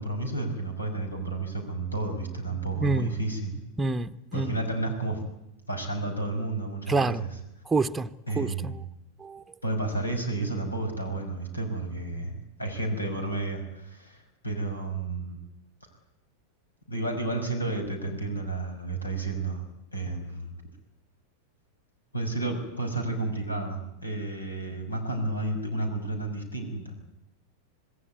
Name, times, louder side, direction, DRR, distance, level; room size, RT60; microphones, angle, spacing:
voice 1, 0.0-3.6 4.3-5.2 5.7-7.4 8.3-8.8 9.6-15.4 16.9-19.6 19.9-20.5 22.1-26.9, right 2 dB, 80° left, 5 dB, 6.2 m, -31 dB
voice 2, 2.8-3.2 3.8-4.6 6.9-7.2 7.7-8.1 8.3-8.7 9.2-9.4, right 3 dB, 10° right, 8 dB, 0.9 m, -27 dB
26.5 x 19.5 x 9.5 m, 0.84 s
figure-of-eight pair, 90°, 0 cm